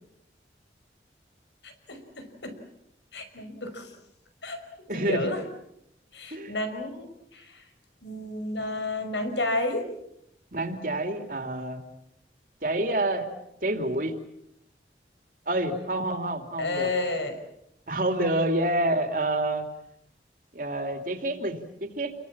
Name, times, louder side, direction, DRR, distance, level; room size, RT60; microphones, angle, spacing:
voice 1, 1.6-2.5 3.1-3.9 4.4-4.7 4.9-5.4 6.1-7.7 8.0-9.9 16.6-17.4, left 2 dB, 85° left, 7 dB, 5.6 m, -31 dB
voice 2, 4.9-5.3 6.3-6.5 10.5-11.8 12.6-13.3 13.6-14.1 15.5-16.9 17.9-19.7 20.5-22.1, right 1 dB, 50° right, 6 dB, 3.0 m, -28 dB
29.5 x 23.0 x 7.4 m, 0.80 s
head